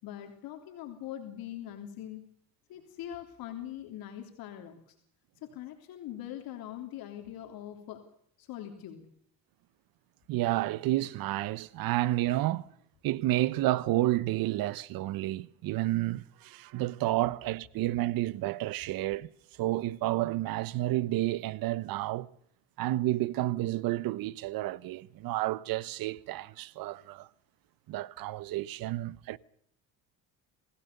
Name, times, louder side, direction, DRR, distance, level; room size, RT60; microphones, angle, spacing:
voice 1, 0.0-2.2 2.7-4.9 5.4-8.0 8.4-9.0, left 11 dB, 70° left, 3.3 m, -42 dB
voice 2, 10.3-12.7 13.0-19.3 19.6-22.3 22.8-27.3 27.9-29.4, right 16 dB, 70° right, 1.1 m, -30 dB
28.0 x 16.5 x 6.8 m
cardioid pair, 120°, 36 cm